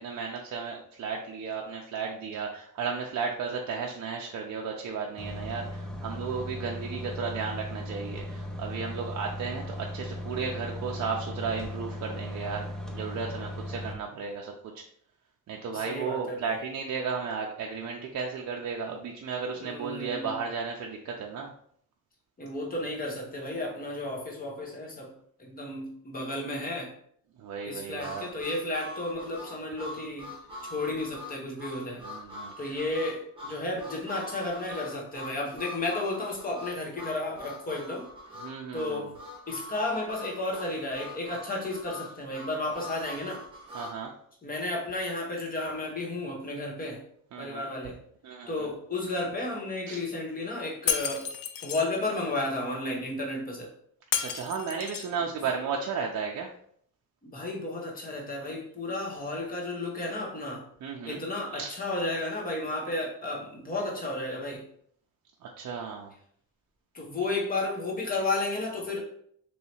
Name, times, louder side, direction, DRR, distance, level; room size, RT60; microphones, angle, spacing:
voice 1, 0.0-14.8 15.5-21.5 27.4-28.3 32.0-32.8 34.7-34.8 38.4-39.1 43.7-44.1 47.3-47.7 48.2-48.7 49.9-50.0 54.2-56.5 60.8-61.2 61.5-61.7 65.4-66.1, right 5 dB, 55° right, 0 dB, 0.5 m, -34 dB
sound 1, 5.2-13.9, left 1 dB, ahead, 0.4 m, -37 dB
voice 2, 15.7-16.6 19.6-20.3 22.4-25.1 25.4-26.9 27.6-30.3 30.6-32.1 32.6-38.1 38.7-39.1 39.5-43.4 44.4-47.0 47.4-48.0 48.5-51.3 51.6-53.7 57.2-60.6 61.0-64.6 66.9-69.0, left 2 dB, 25° left, 0 dB, 0.9 m, -33 dB
Harmonica, 28.0-44.0, left 1 dB, 15° right, 0.9 m, -43 dB
Shatter, 50.9-51.9 54.1-55.2, left 9 dB, 85° left, 0.5 m, -31 dB
3.1 x 2.8 x 4.2 m, 0.64 s
wide cardioid pair, 175°, 34 cm